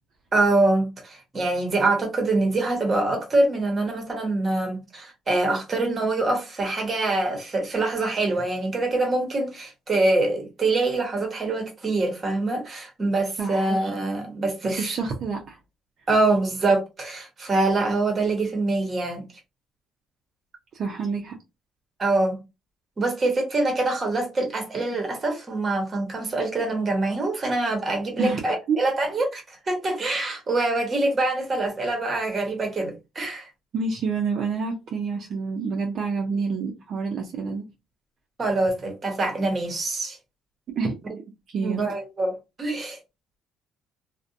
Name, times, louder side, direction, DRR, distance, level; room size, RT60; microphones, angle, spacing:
voice 1, 0.3-14.9 16.1-19.2 22.0-22.4 23.0-33.5 38.4-40.2 41.6-43.0, right 2 dB, 30° right, 1.0 m, -24 dB
voice 2, 13.4-13.7 14.6-15.6 20.7-21.4 28.2-28.4 28.7-28.8 33.7-37.7 40.8-41.2 41.5-41.8, right 5 dB, 55° right, 0.5 m, -28 dB
2.5 x 2.1 x 2.5 m
cardioid pair, 135°, 0 cm